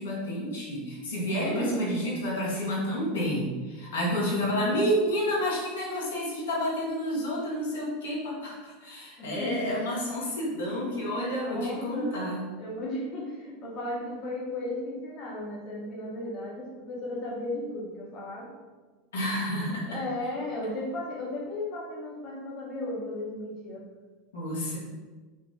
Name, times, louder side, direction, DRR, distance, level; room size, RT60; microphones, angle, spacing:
voice 1, 0.0-12.5 19.1-20.0 24.3-24.8, equal, 80° left, -5 dB, 1.2 m, -30 dB
voice 2, 1.4-1.9 4.2-4.5 9.2-9.6 11.4-12.2 12.6-18.5 19.8-23.8, left 1 dB, 45° left, -5 dB, 1.1 m, -35 dB
3.9 x 2.4 x 3.8 m, 1.3 s
hypercardioid pair, 90°, 0 cm